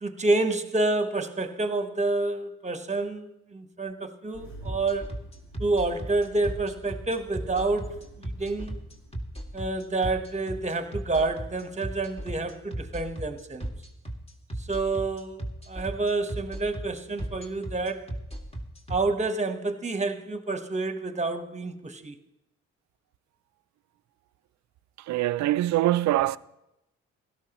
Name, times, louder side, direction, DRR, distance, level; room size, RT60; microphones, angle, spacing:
voice 1, 0.0-5.1 5.6-7.9 8.2-8.8 9.5-13.7 14.6-18.0 18.9-22.1, right 2 dB, 25° right, 1.1 m, -28 dB
Engine starting, 4.3-9.9, equal, 75° left, 2.7 m, -49 dB
sound 1, 4.6-19.0, right 1 dB, 20° left, 2.0 m, -35 dB
voice 2, 25.0-26.4, right 15 dB, 70° right, 0.4 m, -24 dB
16.5 x 12.5 x 3.0 m
supercardioid pair, 65°, 29 cm